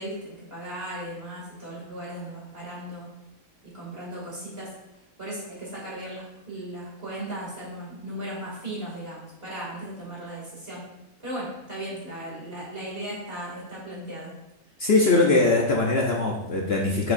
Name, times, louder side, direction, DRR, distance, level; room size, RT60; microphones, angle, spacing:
voice 1, 0.0-3.1 3.6-4.7 5.2-10.9 11.2-14.3, right 1 dB, 40° right, -6 dB, 2.7 m, -37 dB
voice 2, 14.8-17.1, left 3 dB, 50° left, -2 dB, 0.9 m, -21 dB
7.0 x 6.6 x 2.6 m, 0.96 s
omnidirectional pair, 1.5 m